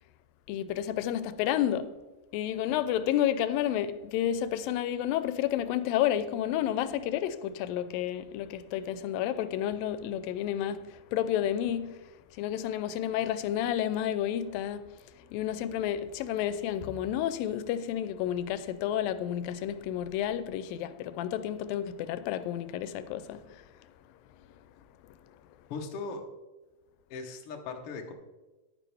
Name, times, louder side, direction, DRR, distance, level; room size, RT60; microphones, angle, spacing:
voice 1, 0.5-1.9 2.3-23.7 25.0-25.1, left 11 dB, 90° left, 2.3 m, -31 dB
voice 2, 25.7-26.2 27.1-28.1, left 4 dB, 60° left, 1.5 m, -38 dB
10.5 x 10.0 x 3.4 m
omnidirectional pair, 4.0 m